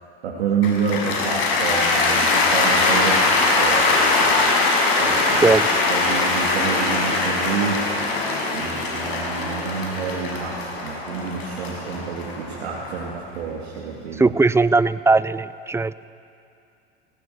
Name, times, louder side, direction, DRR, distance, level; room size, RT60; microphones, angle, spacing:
voice 1, 0.2-4.5 5.0-5.5 5.9-7.8 8.5-14.3, right 6 dB, 80° right, -3 dB, 3.0 m, -28 dB
Cheering / Applause, 0.6-12.9, left 3 dB, 65° left, 6.2 m, -21 dB
sound 1, 4.1-13.1, left 2 dB, 80° left, 7.4 m, -37 dB
voice 2, 14.2-15.9, right 3 dB, 10° right, 17 dB, 0.4 m, -18 dB
19.0 x 18.0 x 8.0 m, 2.5 s
hypercardioid pair, 90°, 32 cm